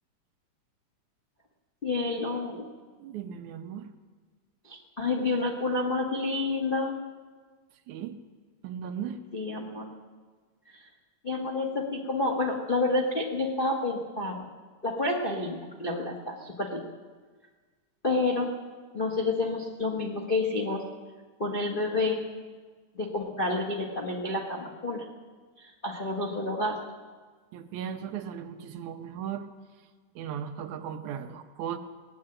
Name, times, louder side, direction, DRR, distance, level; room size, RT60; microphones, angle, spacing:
voice 1, 1.8-2.7 4.6-7.0 9.3-9.9 10.7-10.9 11.2-14.4 14.8-16.8 18.0-18.5 18.9-20.8 21.4-22.2 22.9-25.0 25.6-26.8, left 2 dB, 80° left, 0 dB, 0.4 m, -29 dB
voice 2, 3.0-3.9 7.9-8.2 8.6-9.2 27.5-29.5 30.2-31.8, right 8 dB, 80° right, 6 dB, 2.2 m, -37 dB
18.5 x 7.7 x 9.9 m, 1.4 s
omnidirectional pair, 3.6 m